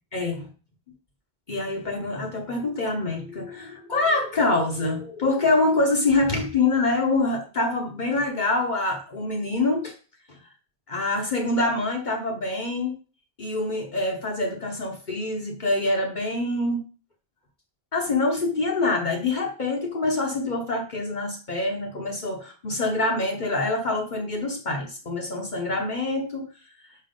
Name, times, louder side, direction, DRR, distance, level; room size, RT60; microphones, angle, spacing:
voice 1, 0.1-0.5 1.5-9.9 10.3-10.4 10.9-12.9 13.4-16.8 17.9-26.5, left 2 dB, 50° left, 2 dB, 1.0 m, -25 dB
5.6 x 4.6 x 5.2 m, 0.36 s
omnidirectional pair, 1.0 m